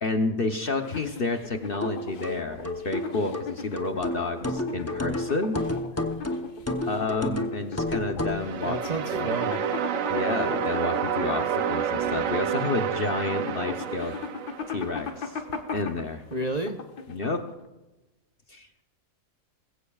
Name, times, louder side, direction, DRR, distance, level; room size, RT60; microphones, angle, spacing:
voice 1, 0.0-5.6 6.9-9.3 10.1-14.1 14.7-15.4 15.7-16.2 17.1-17.5 18.5-18.7, left 3 dB, 45° left, 5 dB, 0.8 m, -30 dB
sound 1, 0.8-17.6, left 5 dB, 85° left, 1.7 m, -38 dB
sound 2, 1.8-8.5, left 1 dB, 20° left, 0.4 m, -31 dB
sound 3, 8.2-15.2, right 8 dB, 65° right, 1.0 m, -29 dB
voice 2, 8.6-9.6 16.3-16.8, right 2 dB, 40° right, 3 dB, 0.7 m, -30 dB
20.5 x 15.5 x 2.4 m, 1.1 s
omnidirectional pair, 1.6 m